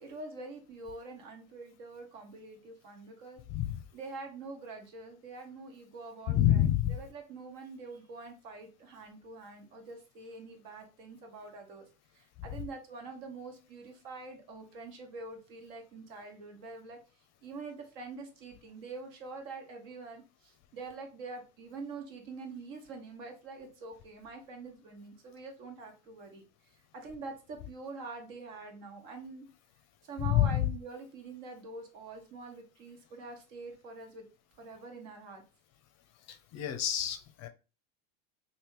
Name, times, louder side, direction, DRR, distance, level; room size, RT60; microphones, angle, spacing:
voice 1, 0.0-3.4 3.9-6.6 6.9-11.8 12.1-17.0 17.4-26.4 26.9-29.5 30.0-34.3 34.6-35.4, right 3 dB, 60° right, 1.3 m, -45 dB
voice 2, 3.5-3.8 6.3-7.0 12.4-12.5 30.2-30.7 36.3-37.5, left 12 dB, 40° left, 0.5 m, -28 dB
3.3 x 2.7 x 3.0 m
hypercardioid pair, 90°, 44 cm